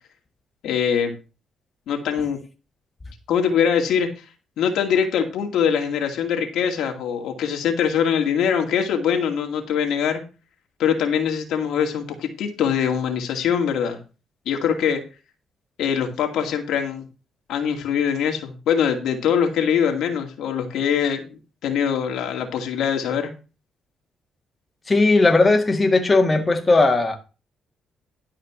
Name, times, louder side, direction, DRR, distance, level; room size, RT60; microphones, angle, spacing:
voice 1, 0.6-1.1 1.9-2.4 3.3-4.1 4.6-10.2 10.8-14.0 14.5-15.0 15.8-17.0 17.5-23.3, left 8 dB, 80° left, 2.3 m, -23 dB
voice 2, 24.9-27.2, left 3 dB, 25° left, 1.9 m, -17 dB
12.0 x 5.0 x 6.1 m
cardioid pair, 90°, 0 cm